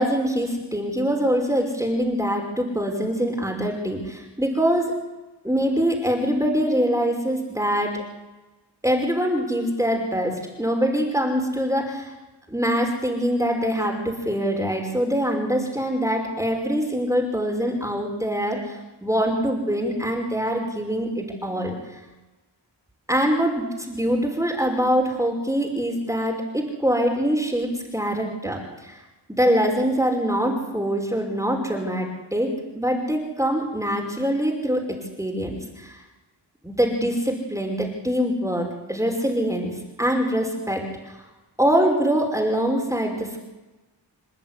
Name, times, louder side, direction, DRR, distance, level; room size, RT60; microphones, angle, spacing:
voice 1, 0.0-4.9 5.4-7.9 8.8-12.1 12.5-21.8 23.1-29.0 29.3-36.0 36.6-39.7 40.0-41.2 41.6-43.4, equal, 5° right, 1 dB, 5.3 m, -24 dB
28.0 x 10.5 x 9.8 m, 1.1 s
cardioid pair, 60°, 44 cm